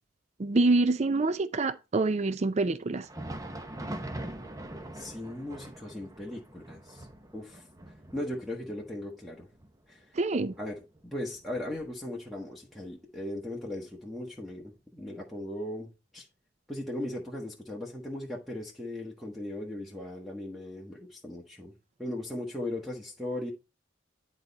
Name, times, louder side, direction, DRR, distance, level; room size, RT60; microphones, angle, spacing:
voice 1, 0.4-3.1 10.1-10.5, right 3 dB, 35° right, 0.5 m, -26 dB
Thunder, 2.9-12.4 12.7-12.9 13.6-13.7 14.7-14.8, right 1 dB, 15° right, 0.8 m, -43 dB
voice 2, 4.9-7.1 7.3-7.7 8.1-9.5 9.9-10.2 10.6-16.3 16.7-21.7 22.0-23.5, left 1 dB, ahead, 1.3 m, -38 dB
10.5 x 4.1 x 4.2 m
head